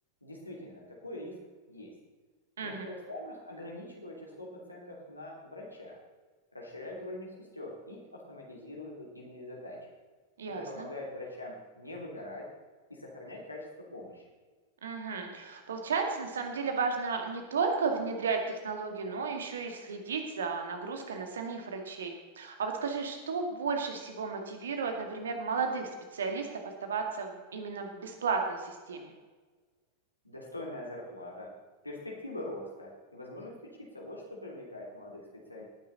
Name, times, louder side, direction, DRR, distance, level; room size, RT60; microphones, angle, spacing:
voice 1, 0.2-1.4 1.7-1.9 2.6-6.0 6.5-9.8 10.4-12.4 12.9-14.2 30.2-31.5 31.8-35.7, left 1 dB, 85° left, -3 dB, 3.0 m, -43 dB
voice 2, 10.4-10.8 14.8-26.5 26.8-29.1, right 5 dB, 65° right, 4 dB, 2.2 m, -33 dB
18.0 x 10.0 x 4.1 m, 1.4 s
figure-of-eight pair, 90°, 0 cm